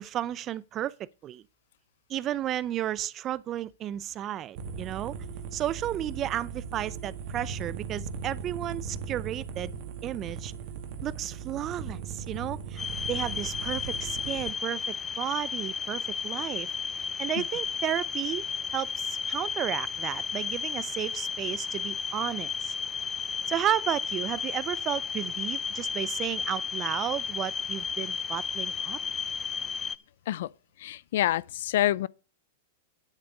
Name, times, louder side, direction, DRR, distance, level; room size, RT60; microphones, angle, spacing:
voice 1, 0.0-1.4 2.1-5.2 5.5-9.7 10.0-10.5 11.0-12.8 13.1-16.7 17.0-18.4 18.7-22.7 23.5-29.0, right 12 dB, 30° right, 0.6 m, -33 dB
sound 1, 4.6-14.5, right 6 dB, 55° right, 1.7 m, -38 dB
sound 2, 12.8-30.0, left 6 dB, 20° left, 0.6 m, -33 dB
voice 2, 30.8-32.1, left 13 dB, 70° left, 0.5 m, -27 dB
9.9 x 8.5 x 5.3 m
hypercardioid pair, 125°, 0 cm